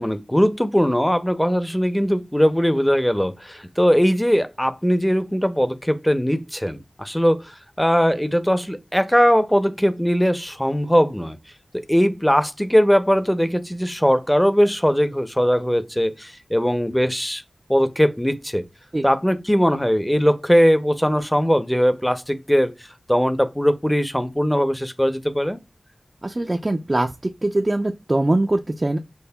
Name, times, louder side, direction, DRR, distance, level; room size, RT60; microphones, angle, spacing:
voice 1, 0.0-11.4 11.7-17.4 17.7-18.6 19.0-22.7 23.1-25.6, equal, 10° left, 0.6 m, -20 dB
voice 2, 26.2-27.1 27.4-29.0, right 2 dB, 35° right, 0.4 m, -22 dB
5.3 x 2.1 x 2.2 m
cardioid pair, 40°, 0 cm